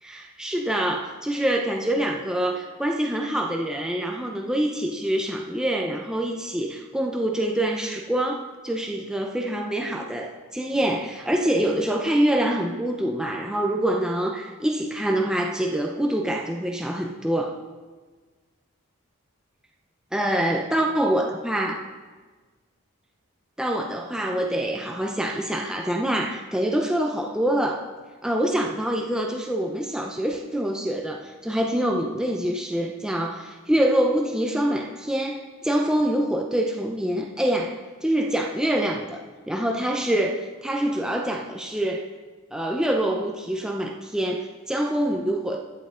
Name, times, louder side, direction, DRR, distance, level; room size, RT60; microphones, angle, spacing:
voice 1, 0.0-17.6 20.1-21.8 23.6-27.8 28.2-37.8 38.0-39.2 39.5-42.0 42.5-45.6, right 1 dB, 5° right, 1 dB, 0.6 m, -25 dB
12.5 x 7.8 x 3.8 m, 1.4 s
head